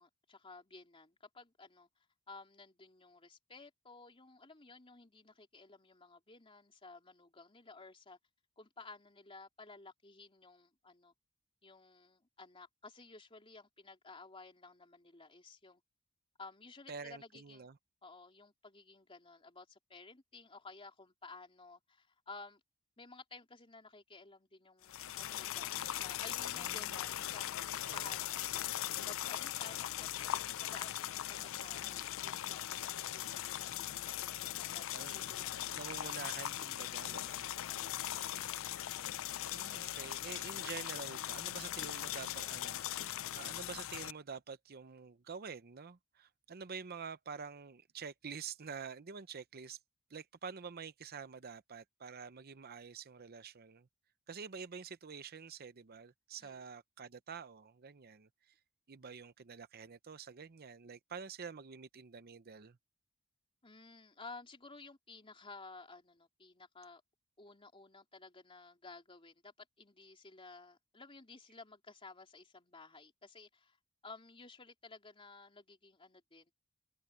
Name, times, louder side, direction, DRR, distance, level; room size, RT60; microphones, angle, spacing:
voice 1, 0.0-1.9 2.3-8.2 8.6-11.1 11.6-15.8 16.4-17.7 18.0-22.6 23.0-27.5 27.8-30.3 30.6-35.5 35.8-36.0 37.7-38.4 56.4-56.6 63.6-67.0 67.4-73.8 74.0-76.6, left 3 dB, 25° left, 3.4 m, -55 dB
voice 2, 16.9-17.8 26.5-27.1 27.9-28.1 34.9-35.3 35.7-37.6 39.4-49.8 50.1-53.9 54.3-58.5 58.9-62.8, right 6 dB, 50° right, 0.7 m, -48 dB
Boiling water, 24.8-44.1, left 12 dB, 70° left, 0.4 m, -40 dB
head